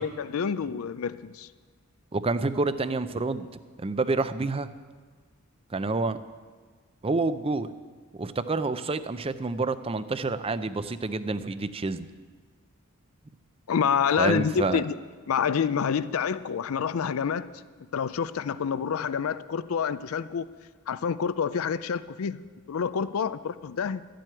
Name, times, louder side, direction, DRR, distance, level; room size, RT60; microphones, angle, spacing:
voice 1, 0.0-1.5 13.7-14.9 15.3-17.5 17.9-20.5 20.9-22.4 22.7-24.0, left 7 dB, 80° left, 15 dB, 0.4 m, -27 dB
voice 2, 2.1-3.5 3.8-4.7 5.7-6.2 7.0-7.7 8.1-12.1 14.2-14.8, right 3 dB, 25° right, 12 dB, 0.5 m, -28 dB
13.0 x 7.7 x 9.0 m, 1.5 s
head